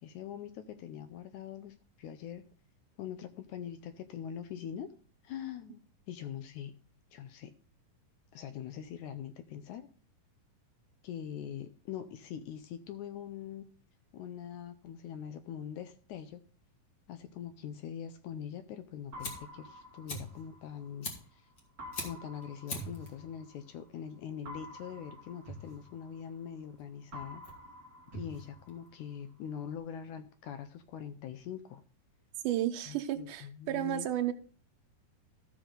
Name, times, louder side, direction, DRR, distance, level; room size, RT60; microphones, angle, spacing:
voice 1, 0.0-2.4 3.0-4.9 5.2-6.7 7.1-7.5 8.3-9.9 11.0-13.7 14.1-16.4 17.1-21.5 22.0-27.4 28.1-31.8 32.9-34.1, left 9 dB, 80° left, 9 dB, 1.8 m, -43 dB
Fire, 18.8-29.2, left 2 dB, 40° left, 1.9 m, -46 dB
sound 1, 19.1-21.2 21.8-23.9 24.5-26.7 27.1-29.2, equal, 40° right, 1.2 m, -48 dB
voice 2, 32.4-34.3, right 12 dB, 75° right, 7 dB, 2.3 m, -32 dB
13.5 x 6.1 x 3.7 m, 0.41 s
omnidirectional pair, 3.9 m